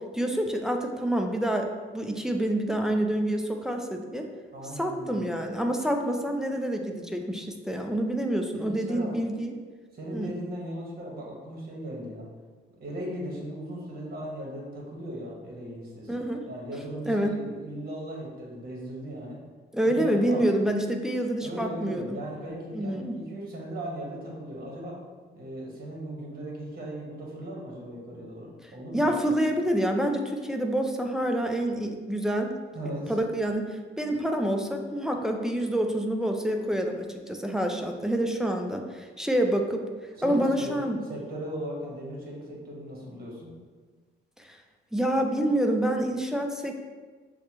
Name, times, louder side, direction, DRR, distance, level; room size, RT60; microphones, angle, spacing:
voice 1, 0.1-1.7 1.9-4.3 4.8-9.5 10.1-10.3 16.1-16.4 17.1-17.3 19.7-22.2 22.7-23.2 28.9-32.5 33.1-39.8 40.2-41.0 44.4-44.6 44.9-46.9, right 1 dB, 5° right, 3 dB, 0.4 m, -27 dB
voice 2, 4.5-5.3 8.6-9.1 9.9-12.3 12.8-19.4 19.9-20.4 21.4-25.0 25.3-29.3 32.7-33.1 40.2-43.5, right 1 dB, 50° right, -2 dB, 1.3 m, -38 dB
6.3 x 2.2 x 3.0 m, 1.4 s
cardioid pair, 90°, 20 cm